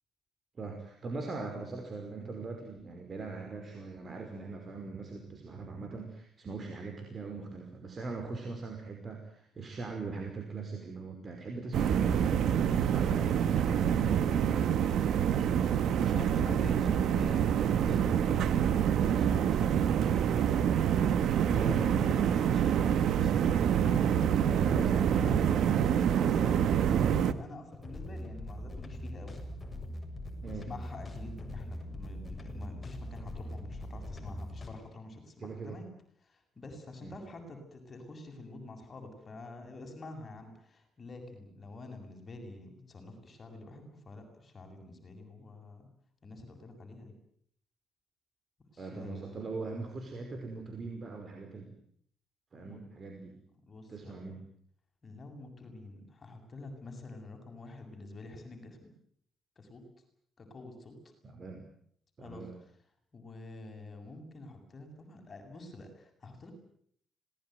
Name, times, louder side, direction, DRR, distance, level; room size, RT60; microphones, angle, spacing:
voice 1, 0.5-13.3 13.6-17.4 21.5-22.1 24.5-25.0 25.3-25.9 30.4-30.7 35.4-35.8 37.0-37.1 48.8-51.8 52.5-53.4 53.9-54.4 61.2-61.6 62.2-62.6, right 3 dB, 40° right, 4 dB, 5.3 m, -41 dB
sound 1, 11.7-27.3, right 8 dB, 75° right, 1.8 m, -26 dB
voice 2, 16.0-20.3 20.9-22.9 23.2-24.3 24.9-25.9 26.2-29.3 30.4-35.9 36.2-45.9 46.2-47.1 48.7-49.5 52.6-52.8 53.7-54.1 55.0-58.9 59.6-59.8 60.4-60.9 62.2-62.4 63.1-66.5, left 2 dB, 40° left, 4 dB, 7.6 m, -47 dB
sound 2, 27.7-34.7, left 1 dB, 20° left, 7.5 m, -42 dB
26.5 x 19.5 x 9.4 m, 0.66 s
cardioid pair, 90°, 0 cm